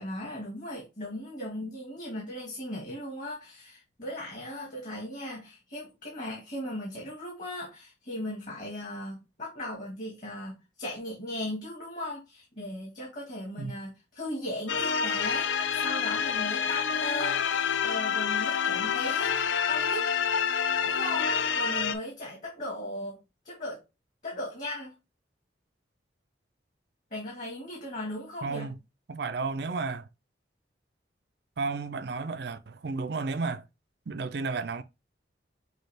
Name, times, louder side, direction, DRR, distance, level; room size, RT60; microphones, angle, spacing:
voice 1, 0.0-17.4 17.8-19.4 19.7-20.1 20.4-23.2 23.4-23.8 24.2-24.9 27.1-28.7, left 1 dB, 45° left, 1.6 m, -37 dB
sound 1, 14.7-21.9, left 7 dB, 85° left, 0.5 m, -28 dB
voice 2, 28.4-28.8 29.1-30.1 31.6-33.6 34.1-34.8, right 4 dB, 60° right, 0.5 m, -32 dB
6.2 x 2.4 x 3.3 m
head